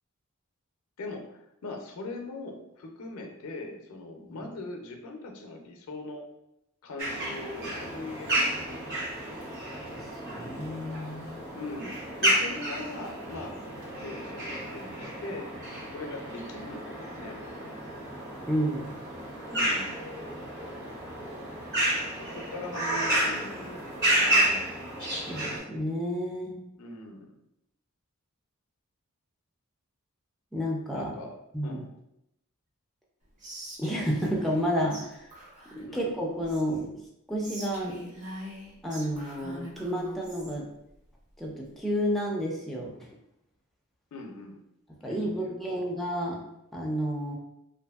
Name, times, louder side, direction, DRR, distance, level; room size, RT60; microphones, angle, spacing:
voice 1, 1.0-6.2 6.8-9.0 11.5-13.6 14.0-15.5 15.9-17.8 19.5-20.1 22.1-24.7 26.8-27.4 30.9-31.3 31.6-31.9 35.9-36.0 44.1-44.6 45.0-45.8, left 2 dB, 70° left, 3 dB, 0.5 m, -41 dB
sound 1, 7.0-25.6, right 1 dB, 50° right, 1.0 m, -31 dB
voice 2, 9.7-11.4 18.4-18.9 25.3-26.6 30.5-31.1 31.5-31.8 33.8-35.3 35.7-36.9 37.3-38.0 38.8-40.7 41.4-43.1 45.0-46.4 46.7-47.4, equal, ahead, -2 dB, 0.3 m, -31 dB
Whispering, 33.4-34.6 34.9-35.0 35.3-36.8 37.4-40.5, equal, 35° right, 0.7 m, -43 dB
2.6 x 2.5 x 2.3 m, 0.82 s
head